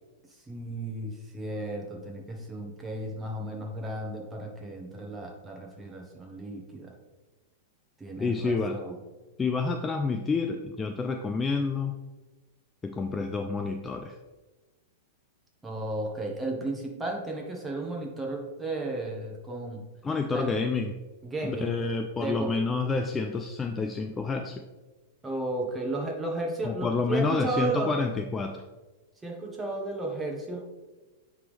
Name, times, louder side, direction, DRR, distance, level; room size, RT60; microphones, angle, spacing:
voice 1, 0.5-6.9 8.0-8.9 15.6-19.8 20.3-20.5 21.2-21.9 22.2-22.6 25.2-27.9 29.2-30.7, right 2 dB, 10° right, 0 dB, 1.3 m, -34 dB
voice 2, 8.2-8.8 9.4-12.0 12.8-14.2 20.0-20.9 21.4-24.6 26.6-28.6, left 4 dB, 15° left, 5 dB, 0.4 m, -29 dB
9.1 x 3.6 x 3.4 m, 1.2 s
hypercardioid pair, 135°, 0 cm